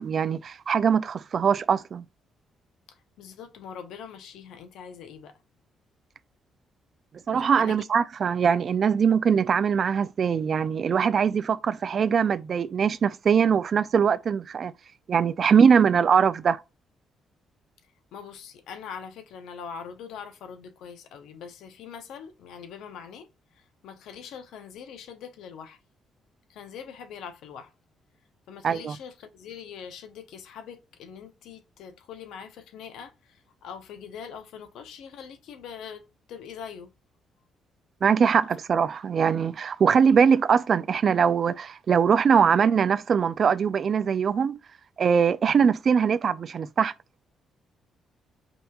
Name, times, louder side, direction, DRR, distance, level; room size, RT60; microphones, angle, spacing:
voice 1, 0.0-2.0 7.3-14.7 15.1-16.6 28.6-29.0 38.0-44.6 45.0-46.9, right 6 dB, 50° right, 0.3 m, -22 dB
voice 2, 2.9-5.3 7.3-7.8 18.1-23.3 23.5-25.8 26.5-27.7 28.5-36.9, left 7 dB, 85° left, 0.7 m, -43 dB
5.3 x 2.9 x 2.3 m
cardioid pair, 90°, 0 cm